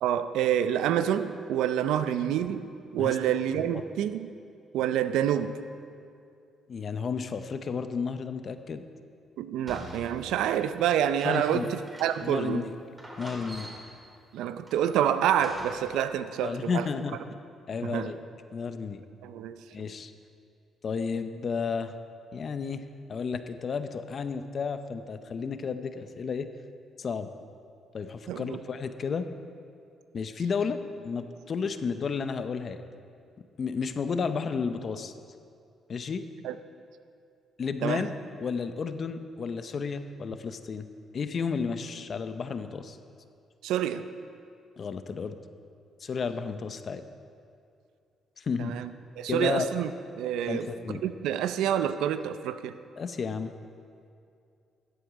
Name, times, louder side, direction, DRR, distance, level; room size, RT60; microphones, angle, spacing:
voice 1, 0.0-4.3 4.7-5.5 9.4-12.7 14.3-16.9 17.8-18.1 19.2-19.6 28.3-28.6 36.4-36.5 37.8-38.0 43.6-44.0 48.6-49.9 50.2-50.7 51.0-52.8, right 10 dB, 90° right, 11 dB, 0.5 m, -28 dB
voice 2, 6.7-8.8 11.2-11.7 12.2-12.7 13.2-13.7 16.4-17.2 17.7-18.2 18.5-19.0 19.7-20.1 20.8-22.0 22.3-22.8 23.1-26.5 27.0-27.3 27.9-29.2 30.1-32.8 33.6-35.1 35.9-36.2 37.6-38.1 38.4-40.9 41.1-43.0 44.8-45.4 46.0-47.0 48.4-48.8 49.3-49.7 50.5-51.0 53.0-53.5, left 5 dB, 50° left, 10 dB, 0.6 m, -32 dB
sound 1, 9.7-12.4 12.7-12.8 13.0-14.1 14.7-16.0, right 1 dB, 20° right, 2.2 m, -44 dB
13.0 x 7.9 x 5.0 m, 2.4 s
cardioid pair, 90°, 0 cm